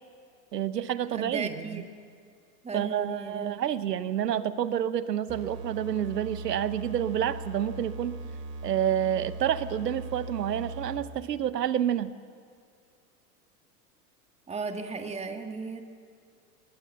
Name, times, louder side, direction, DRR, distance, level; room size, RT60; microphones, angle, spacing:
voice 1, 0.5-1.8 2.7-8.2 8.6-12.1, right 10 dB, 90° right, 14 dB, 1.0 m, -29 dB
voice 2, 1.1-1.9 2.6-3.5 14.5-15.8, right 4 dB, 15° right, 6 dB, 1.7 m, -36 dB
sound 1, 5.3-11.2, right 2 dB, 45° right, 3.5 m, -39 dB
21.5 x 18.5 x 7.0 m, 2.3 s
hypercardioid pair, 100°, 47 cm